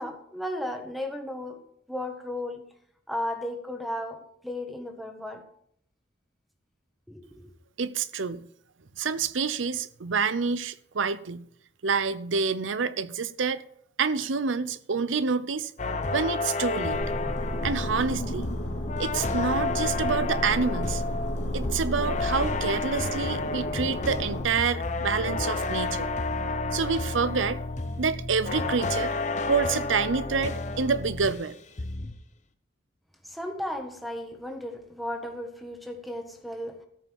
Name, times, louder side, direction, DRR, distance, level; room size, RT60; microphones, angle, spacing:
voice 1, 0.0-1.6 1.9-2.7 3.1-5.4 7.1-7.5 33.2-36.8, left 1 dB, ahead, 1.4 m, -35 dB
voice 2, 7.8-8.5 9.0-11.4 11.8-13.6 14.0-15.7 16.1-17.0 17.6-18.5 19.0-21.0 21.5-26.1 26.7-27.6 28.0-29.1 29.5-31.6, right 5 dB, 90° right, 0.7 m, -27 dB
sound 1, 15.8-31.5 31.8-32.2, left 3 dB, 40° left, 0.8 m, -31 dB
sound 2, 16.9-24.4, equal, 65° left, 2.5 m, -33 dB
14.0 x 5.6 x 7.2 m
head